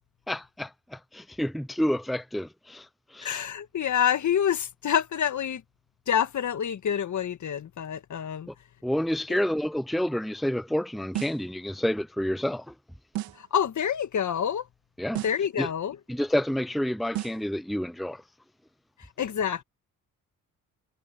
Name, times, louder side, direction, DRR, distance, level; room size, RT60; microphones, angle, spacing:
voice 1, 0.3-3.4 8.5-8.6 8.8-12.7 15.0-15.2 15.6-15.7 16.1-18.2, equal, ahead, 0.9 m, -29 dB
voice 2, 3.2-5.6 6.1-8.5 9.3-9.4 13.4-14.7 15.2-16.0 19.2-19.6, left 9 dB, 55° left, 1.8 m, -27 dB
sound 1, 11.1-11.5 13.1-13.5 15.1-15.5 17.1-17.5, right 14 dB, 85° right, 3.5 m, -34 dB
supercardioid pair, 60°, 35 cm